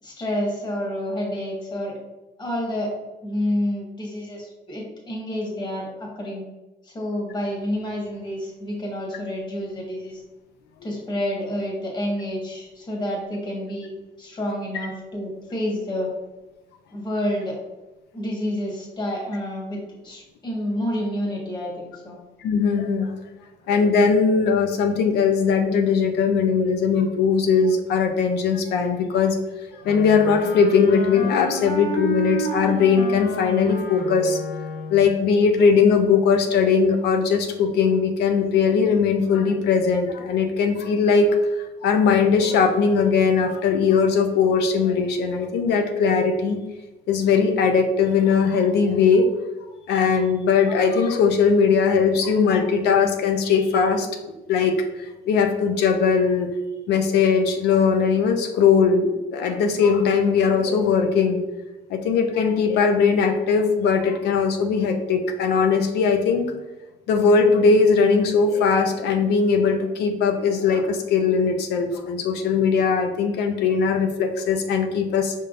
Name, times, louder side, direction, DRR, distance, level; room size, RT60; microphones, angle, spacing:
voice 1, 0.0-1.9 2.4-2.9 3.2-6.4 6.8-10.2 10.8-13.9 14.2-16.1 16.9-17.6 18.1-22.2, left 1 dB, 25° left, -2 dB, 1.5 m, -29 dB
voice 2, 22.4-23.1 23.7-29.4 29.7-34.4 34.9-41.5 41.8-46.6 47.1-49.3 49.9-54.1 54.5-56.5 56.9-61.4 61.9-66.5 67.1-75.3, left 5 dB, 80° left, 5 dB, 0.6 m, -20 dB
Wind instrument woodwind instrument, 29.8-35.2, equal, 60° left, 1.1 m, -30 dB
5.4 x 3.6 x 2.5 m, 1.1 s
cardioid pair, 110°, 17 cm